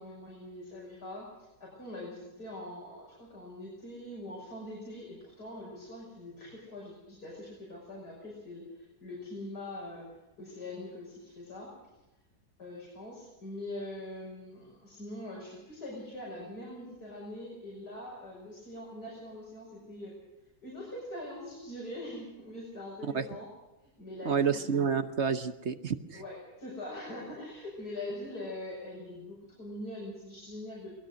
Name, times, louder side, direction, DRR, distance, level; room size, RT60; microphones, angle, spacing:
voice 1, 0.0-11.9 12.6-20.2 20.6-23.5 24.0-25.0 26.1-31.0, left 1 dB, 85° left, -5 dB, 6.7 m, -43 dB
voice 2, 24.2-26.2, right 6 dB, 50° right, 10 dB, 1.2 m, -29 dB
22.5 x 20.0 x 6.4 m, 1.0 s
omnidirectional pair, 1.6 m